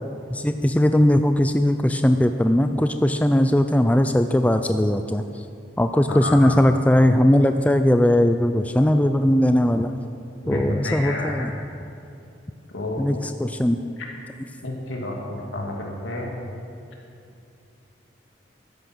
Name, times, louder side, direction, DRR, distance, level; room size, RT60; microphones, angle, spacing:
voice 1, 0.3-5.2 5.8-9.9 10.5-11.5 13.0-13.8, left 1 dB, 10° left, 8 dB, 0.3 m, -19 dB
voice 2, 6.1-6.5 10.4-11.5 12.7-13.0 14.6-16.3, left 1 dB, 85° left, -1 dB, 2.6 m, -30 dB
13.5 x 10.5 x 6.2 m, 2.6 s
head